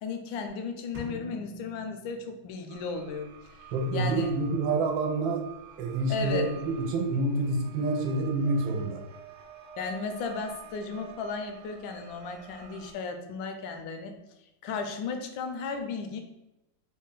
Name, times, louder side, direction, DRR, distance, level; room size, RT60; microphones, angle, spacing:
voice 1, 0.0-3.3 3.9-4.3 6.1-6.5 9.8-14.1 14.6-16.2, left 4 dB, 85° left, 5 dB, 1.3 m, -35 dB
sound 1, 0.9-2.8, left 2 dB, 50° right, 0.5 m, -45 dB
sound 2, 2.7-12.9, right 9 dB, 75° right, 1.1 m, -49 dB
voice 2, 3.7-5.4 5.8-9.0, right 2 dB, 90° right, 3 dB, 1.4 m, -28 dB
3.6 x 2.2 x 3.9 m, 0.94 s
omnidirectional pair, 2.1 m